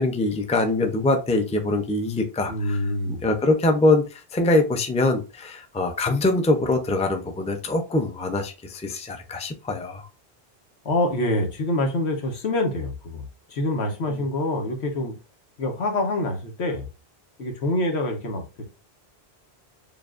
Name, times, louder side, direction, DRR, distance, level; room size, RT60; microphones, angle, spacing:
voice 1, 0.0-2.8 3.2-10.1, left 2 dB, 10° left, 0.4 m, -23 dB
voice 2, 2.5-3.2 10.8-15.1 15.6-16.9 17.4-18.4, left 1 dB, 85° left, 1.3 m, -26 dB
6.9 x 2.6 x 2.5 m
omnidirectional pair, 1.1 m